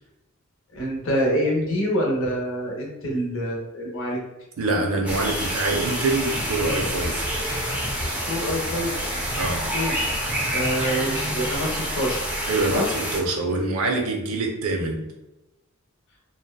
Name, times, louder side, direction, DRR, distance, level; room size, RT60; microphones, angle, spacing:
voice 1, 0.7-4.2 8.3-9.0 9.7-10.2 10.5-12.2 12.7-12.8, equal, 60° left, -2 dB, 0.7 m, -26 dB
voice 2, 4.6-7.3 9.3-9.7 12.5-12.8 13.1-15.1, right 2 dB, 70° right, 2 dB, 0.5 m, -25 dB
sound 1, 5.1-13.2, equal, 5° right, 0.3 m, -28 dB
sound 2, 6.4-10.9 11.1-11.6, equal, 25° left, 0.8 m, -36 dB
2.6 x 2.2 x 2.2 m, 0.97 s
head